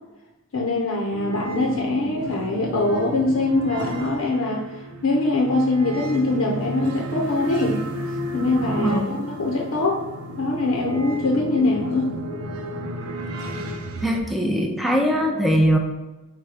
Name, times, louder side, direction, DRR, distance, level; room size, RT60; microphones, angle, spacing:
voice 1, 0.5-4.7 5.0-7.8 8.3-10.0 10.4-12.1, left 2 dB, 70° left, -2 dB, 0.6 m, -23 dB
sound 1, 1.1-14.2, right 1 dB, 85° right, 0.5 m, -33 dB
voice 2, 8.8-9.1 14.0-15.8, equal, ahead, 0 dB, 0.5 m, -21 dB
4.8 x 2.2 x 4.8 m, 1.1 s
head